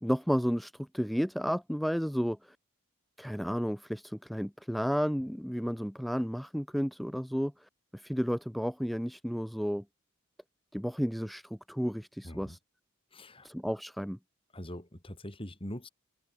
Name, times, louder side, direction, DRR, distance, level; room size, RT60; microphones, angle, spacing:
voice 1, 0.0-2.6 3.2-9.8 10.7-12.6 13.4-14.2, equal, ahead, 0.6 m, -32 dB
voice 2, 12.2-12.6 13.1-13.5 14.5-15.9, equal, 25° left, 4.3 m, -42 dB
head